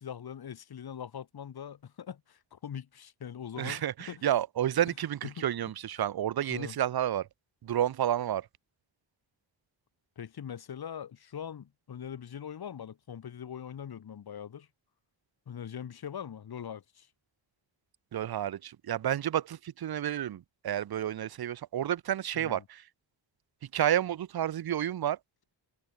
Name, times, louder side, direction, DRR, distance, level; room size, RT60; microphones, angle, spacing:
voice 1, 0.0-4.3 5.2-5.7 6.5-6.8 10.2-14.7 15.5-17.1 22.3-22.6, left 8 dB, 55° left, 0.9 m, -42 dB
voice 2, 3.6-7.3 7.6-8.5 18.1-22.8 23.7-25.2, right 11 dB, 55° right, 0.5 m, -30 dB
wide cardioid pair, 130°, 46 cm